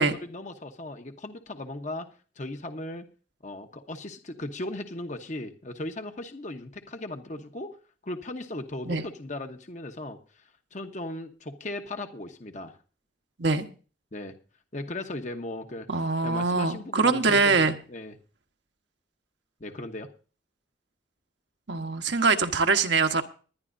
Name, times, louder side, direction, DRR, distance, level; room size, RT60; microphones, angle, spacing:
voice 1, 0.0-2.1 2.4-3.1 3.4-7.8 8.0-10.4 10.7-12.8 14.1-14.3 14.7-18.2 19.6-20.1, left 1 dB, 40° left, 1.0 m, -37 dB
voice 2, 15.9-17.7 21.7-23.2, right 4 dB, 70° right, 1.2 m, -23 dB
21.0 x 10.5 x 2.6 m
head